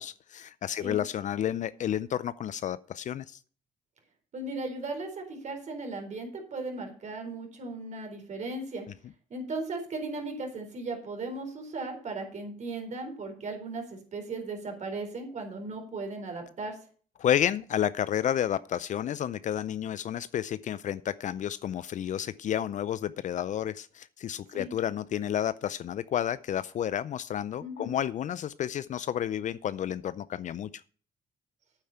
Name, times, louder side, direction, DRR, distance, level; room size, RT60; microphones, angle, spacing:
voice 1, 0.0-3.4 17.2-30.7, left 10 dB, 60° left, 0.5 m, -31 dB
voice 2, 4.3-8.9 9.3-16.8 24.5-24.7 27.6-27.9, right 3 dB, 55° right, 4.2 m, -37 dB
9.0 x 8.4 x 5.8 m
cardioid pair, 80°, 14 cm